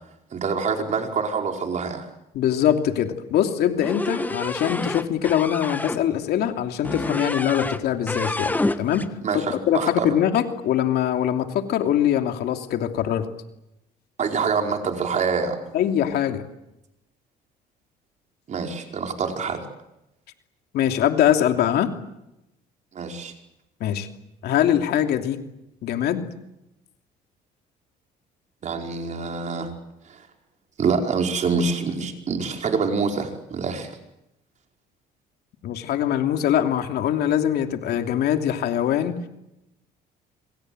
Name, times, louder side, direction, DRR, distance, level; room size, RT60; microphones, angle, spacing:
voice 1, 0.3-2.1 9.2-10.1 14.2-15.6 18.5-19.7 22.9-23.3 28.6-29.7 30.1-30.2 30.8-34.0, right 5 dB, 45° right, 3 dB, 5.0 m, -26 dB
voice 2, 2.3-9.0 9.7-13.3 15.7-16.4 20.7-21.9 23.8-24.1 24.4-25.4 25.8-26.3 35.6-39.2, left 10 dB, 70° left, 5 dB, 2.9 m, -22 dB
sound 1, 3.8-6.0 6.8-9.1, left 2 dB, 10° left, 1.5 m, -28 dB
26.5 x 26.0 x 7.9 m, 0.88 s
cardioid pair, 110°, 17 cm